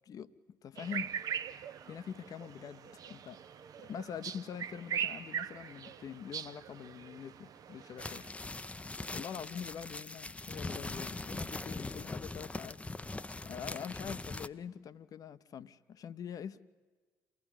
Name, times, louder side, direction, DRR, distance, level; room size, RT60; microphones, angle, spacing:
voice 1, 0.1-1.1 1.9-3.4 3.8-8.2 9.1-12.8 13.4-16.6, left 8 dB, 45° left, 14 dB, 0.9 m, -44 dB
sound 1, 0.8-8.3, right 8 dB, 45° right, 0.7 m, -41 dB
sound 2, 8.0-14.5, left 2 dB, 15° left, 0.7 m, -41 dB
28.0 x 17.0 x 10.0 m, 1.4 s
figure-of-eight pair, 50°, 8 cm